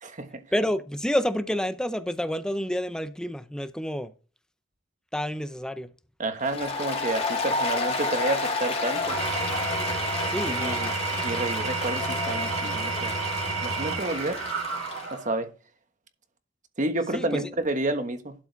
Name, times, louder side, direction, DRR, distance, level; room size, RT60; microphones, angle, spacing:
voice 1, 0.0-0.4 6.2-9.2 10.5-10.9 11.2-13.2 13.6-14.4 15.1-15.5 16.8-18.3, right 2 dB, 40° right, 1.3 m, -30 dB
voice 2, 0.5-4.1 5.1-5.9 10.2-10.8 17.1-17.5, equal, 5° left, 0.6 m, -29 dB
Applause, 6.4-15.1, left 3 dB, 30° left, 2.4 m, -31 dB
Engine / Tools, 8.9-15.4, right 4 dB, 85° right, 1.6 m, -31 dB
12.0 x 4.8 x 4.6 m
head